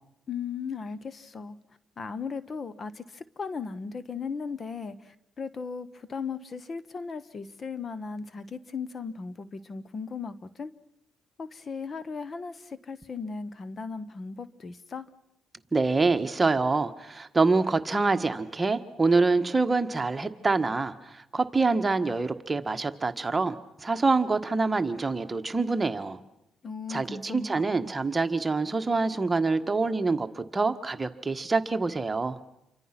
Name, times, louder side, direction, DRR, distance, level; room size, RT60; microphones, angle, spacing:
voice 1, 0.3-1.6 2.0-10.7 11.4-15.1 26.6-27.7, left 5 dB, 40° left, 15 dB, 1.2 m, -37 dB
voice 2, 15.7-26.2 26.9-32.4, right 3 dB, 25° right, 8 dB, 1.5 m, -26 dB
28.0 x 24.5 x 6.0 m, 0.86 s
cardioid pair, 90°, 0 cm